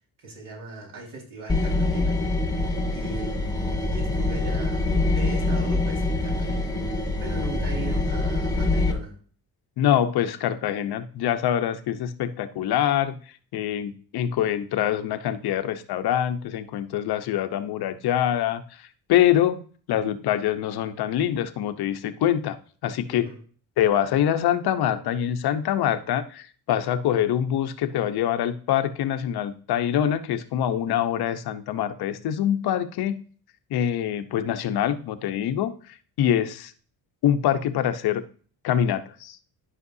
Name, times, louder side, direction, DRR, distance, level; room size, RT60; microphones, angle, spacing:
voice 1, 0.2-2.6 2.9-3.6 3.9-9.2 23.1-23.4, right 2 dB, 60° right, -2 dB, 4.8 m, -40 dB
sound 1, 1.5-8.9, left 2 dB, 10° left, 1.3 m, -25 dB
voice 2, 9.8-13.2 13.5-18.6 19.1-22.6 22.8-23.3 23.8-33.2 33.7-35.7 36.2-36.7 37.2-38.2 38.6-39.4, left 10 dB, 80° left, 9 dB, 1.0 m, -24 dB
12.5 x 5.9 x 2.7 m, 0.43 s
cardioid pair, 130°, 38 cm